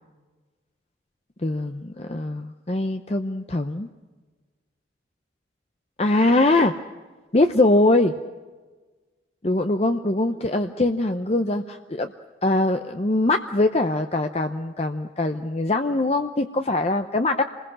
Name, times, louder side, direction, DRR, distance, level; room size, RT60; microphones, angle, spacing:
voice 1, 1.4-3.9 6.0-6.8 7.3-8.1 9.4-12.1 12.4-17.4, left 2 dB, 35° left, 7 dB, 0.7 m, -22 dB
28.0 x 20.5 x 6.3 m, 1.3 s
head